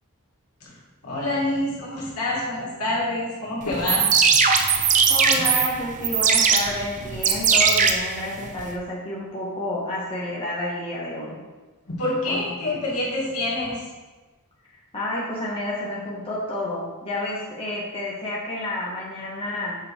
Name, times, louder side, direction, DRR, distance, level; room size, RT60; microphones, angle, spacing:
voice 1, 1.0-4.1 11.8-13.9, left 2 dB, 75° left, -5 dB, 2.5 m, -27 dB
sound 1, 3.7-8.7, right 6 dB, 35° right, 0.6 m, -20 dB
voice 2, 5.1-11.4 12.3-12.4 12.6-12.7 14.9-19.8, left 1 dB, 25° left, -7 dB, 1.7 m, -30 dB
7.0 x 6.0 x 4.7 m, 1.2 s
head